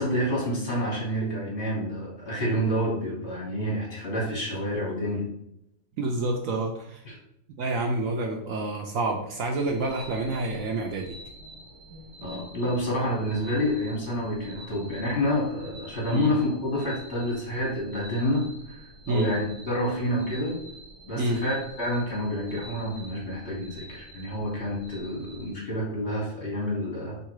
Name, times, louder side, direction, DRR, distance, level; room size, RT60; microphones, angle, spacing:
voice 1, 0.0-5.2 7.0-7.2 12.2-20.6 21.0-27.2, equal, 40° left, -4 dB, 1.5 m, -28 dB
voice 2, 6.0-7.0 7.6-11.1 16.1-16.3 19.1-19.3 21.2-21.4, right 2 dB, 75° right, 2 dB, 0.7 m, -28 dB
sound 1, 9.6-25.6, right 1 dB, 55° right, 1.4 m, -47 dB
3.7 x 3.0 x 4.7 m, 0.79 s
omnidirectional pair, 2.0 m